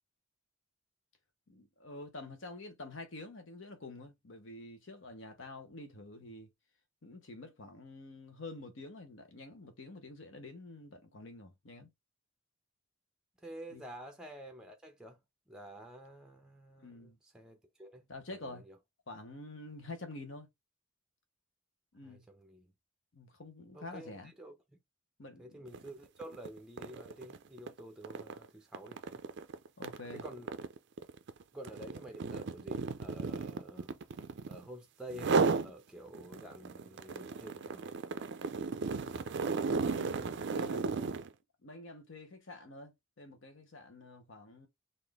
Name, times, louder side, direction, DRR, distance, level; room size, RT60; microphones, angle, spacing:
voice 1, 1.5-6.5 7.0-11.9 13.7-13.8 16.8-17.2 18.1-18.6 19.1-20.5 21.9-22.2 23.1-24.3 25.2-25.6 29.8-30.2 39.6-41.1 41.6-44.7, left 2 dB, 65° left, 1.0 m, -48 dB
voice 2, 13.4-15.2 15.5-18.8 22.0-22.7 23.7-24.6 25.4-29.2 30.1-30.5 31.5-33.9 34.5-38.0, right 1 dB, 5° right, 0.6 m, -50 dB
sound 1, 25.7-25.9 26.2-34.7 35.1-35.7 36.1-41.3, right 4 dB, 55° right, 0.4 m, -35 dB
4.1 x 2.6 x 3.4 m
head